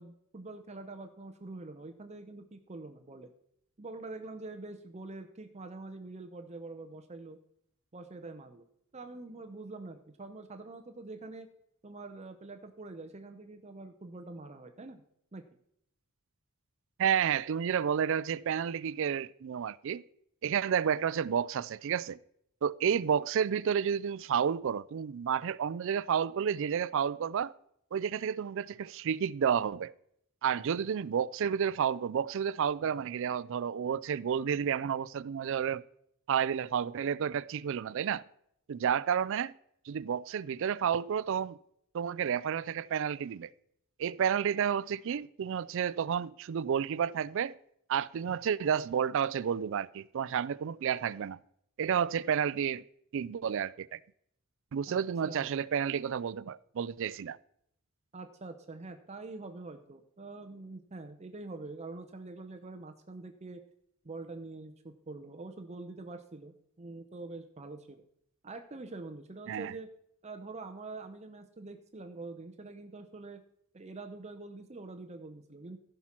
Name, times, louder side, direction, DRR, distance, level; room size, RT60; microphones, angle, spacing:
voice 1, 0.0-3.3 3.8-7.4 7.9-8.6 8.9-11.5 11.8-15.0 15.3-15.4 54.9-55.6 58.1-63.6 64.0-68.0 68.4-69.9 70.2-73.4 73.7-75.8, right 3 dB, 30° right, 0.7 m, -45 dB
voice 2, 17.0-20.0 20.4-22.2 22.6-27.5 27.9-29.9 30.4-35.8 36.3-38.2 38.7-39.5 39.9-41.6 41.9-43.5 44.0-47.6 47.9-51.4 51.8-52.8 53.1-54.0 54.7-57.4 69.5-69.7, right 8 dB, 60° right, 0.3 m, -31 dB
15.0 x 5.9 x 4.4 m
head